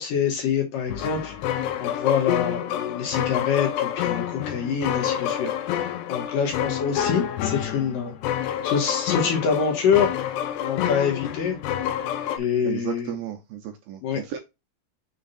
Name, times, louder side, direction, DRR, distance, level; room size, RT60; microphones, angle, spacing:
voice 1, 0.0-10.1 10.6-11.6 12.4-13.2 14.0-14.2, left 7 dB, 60° left, 1 dB, 2.9 m, -26 dB
sound 1, 0.9-12.4, left 11 dB, 90° left, 2.9 m, -28 dB
voice 2, 12.6-14.4, right 11 dB, 75° right, 4 dB, 2.3 m, -34 dB
6.7 x 3.7 x 4.1 m, 0.23 s
omnidirectional pair, 4.9 m